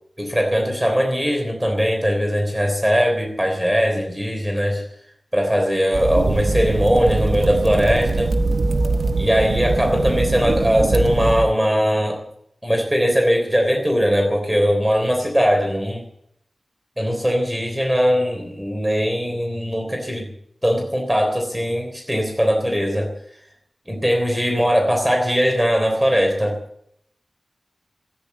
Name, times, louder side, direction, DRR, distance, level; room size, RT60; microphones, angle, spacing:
voice 1, 0.2-4.8 5.3-8.3 9.2-12.2 12.6-16.1 17.0-20.3 20.6-23.1 23.9-26.6, equal, 5° right, 2 dB, 3.4 m, -20 dB
sound 1, 5.9-11.5, right 3 dB, 75° right, 0.9 m, -22 dB
14.0 x 10.0 x 9.3 m, 0.72 s
wide cardioid pair, 90°, 0 cm